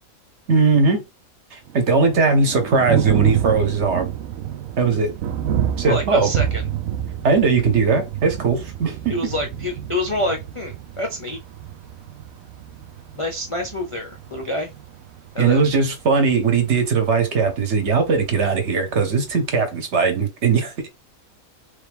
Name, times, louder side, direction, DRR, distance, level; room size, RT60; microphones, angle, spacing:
voice 1, 0.5-1.0 1.5-4.1 4.8-5.2 5.8-6.3 7.2-9.3 15.4-20.7, right 4 dB, 55° right, 1.1 m, -19 dB
Thunder, 1.7-19.6, right 10 dB, 80° right, 1.0 m, -29 dB
voice 2, 5.9-6.6 9.1-11.4 13.1-14.7 15.3-15.7, left 1 dB, 40° left, 0.4 m, -27 dB
3.5 x 3.2 x 3.4 m
omnidirectional pair, 1.5 m